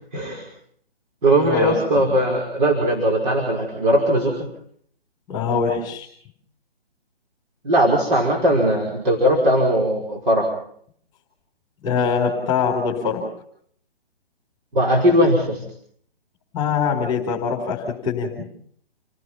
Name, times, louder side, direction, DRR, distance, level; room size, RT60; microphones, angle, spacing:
voice 1, 0.1-0.5 1.2-4.4 7.6-10.5 14.7-15.6, right 1 dB, 50° right, 0 dB, 5.4 m, -19 dB
voice 2, 1.4-2.2 5.3-6.1 11.8-13.2 16.5-18.5, left 5 dB, 15° left, -1 dB, 4.4 m, -23 dB
29.5 x 18.0 x 5.7 m, 0.64 s
figure-of-eight pair, 145°, 30 cm